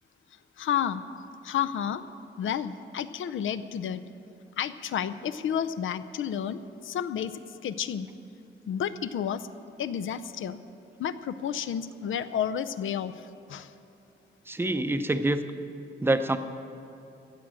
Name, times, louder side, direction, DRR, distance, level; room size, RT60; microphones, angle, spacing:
voice 1, 0.6-1.0 1.4-2.0 2.4-4.0 4.6-8.1 8.7-9.5 9.8-10.6 11.0-13.7, left 8 dB, 90° left, 13 dB, 0.6 m, -31 dB
voice 2, 14.5-15.4 16.0-16.4, right 2 dB, 10° right, 9 dB, 0.6 m, -25 dB
15.5 x 7.3 x 8.9 m, 2.8 s
wide cardioid pair, 175°, 20 cm